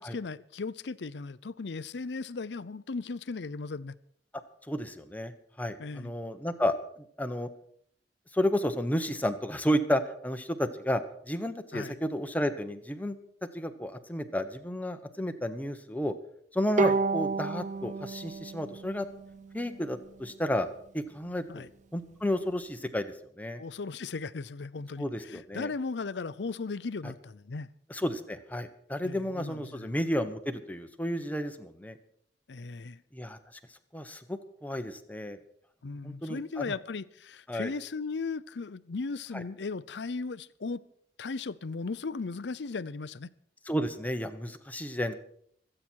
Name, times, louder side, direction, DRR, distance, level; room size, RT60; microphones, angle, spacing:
voice 1, 0.0-4.0 5.8-6.1 11.7-12.0 16.8-17.0 21.5-21.7 23.6-27.7 29.0-30.0 32.5-33.0 35.8-40.8 41.2-43.3, left 4 dB, 75° left, 16 dB, 0.6 m, -37 dB
voice 2, 4.7-5.3 5.6-6.8 7.2-7.5 8.3-13.2 13.5-16.1 16.5-19.1 19.5-20.7 20.9-23.6 25.0-25.7 27.9-32.0 33.1-33.4 33.9-35.4 36.0-36.7 37.5-37.7 43.7-45.1, equal, 10° left, 7 dB, 1.1 m, -32 dB
Bowed string instrument, 16.8-20.1, right 4 dB, 45° right, 0.5 m, -31 dB
26.0 x 8.9 x 4.6 m, 0.65 s
head